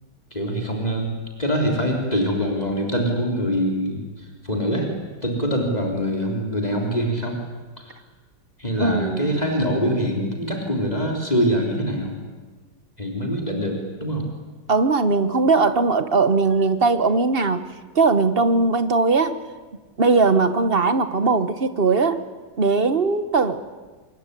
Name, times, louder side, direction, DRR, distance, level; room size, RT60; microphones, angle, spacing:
voice 1, 0.3-1.1 1.4-4.9 5.2-7.4 7.8-7.9 8.6-12.2 13.0-14.3, equal, 20° left, 1 dB, 3.7 m, -24 dB
voice 2, 8.8-9.4 14.7-19.4 20.0-22.2 22.6-23.6, right 4 dB, 35° right, 12 dB, 1.0 m, -19 dB
25.5 x 21.5 x 9.9 m, 1.3 s
omnidirectional pair, 2.1 m